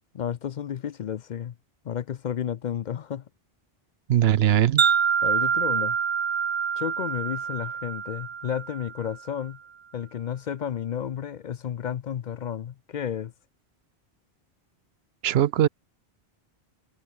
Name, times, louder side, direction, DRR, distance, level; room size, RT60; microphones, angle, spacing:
voice 1, 0.1-1.5 1.8-3.2 5.2-6.0 6.8-9.6 9.9-13.3, left 9 dB, 55° left, 0.6 m, -32 dB
voice 2, 4.1-4.8 15.2-15.7, right 11 dB, 75° right, 0.8 m, -20 dB
Wind chime, 4.8-9.1, right 7 dB, 50° right, 0.3 m, -26 dB
omnidirectional pair, 1.1 m